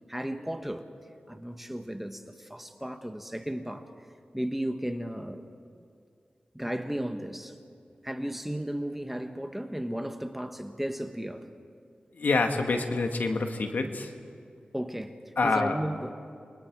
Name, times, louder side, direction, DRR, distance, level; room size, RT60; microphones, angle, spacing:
voice 1, 0.1-0.9 1.3-3.9 4.3-5.5 5.8-5.9 6.5-7.5 8.0-11.4 14.7-16.1, right 1 dB, 5° right, 1.3 m, -34 dB
voice 2, 12.1-14.1 15.4-15.8, left 3 dB, 75° left, 1.8 m, -27 dB
29.5 x 23.0 x 4.7 m
wide cardioid pair, 65°, 3 cm